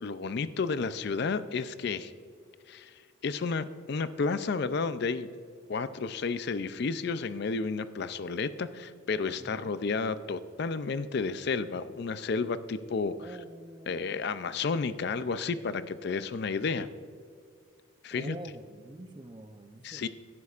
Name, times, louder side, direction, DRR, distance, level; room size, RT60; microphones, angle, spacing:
voice 1, 0.0-2.1 2.7-2.9 3.2-5.3 5.7-13.4 13.9-16.9 18.0-18.4 19.8-20.1, left 4 dB, 55° left, 13 dB, 0.4 m, -31 dB
voice 2, 9.4-9.7 13.2-14.2 18.1-20.1, right 1 dB, 25° right, 9 dB, 0.6 m, -46 dB
16.5 x 11.0 x 2.5 m, 2.2 s
head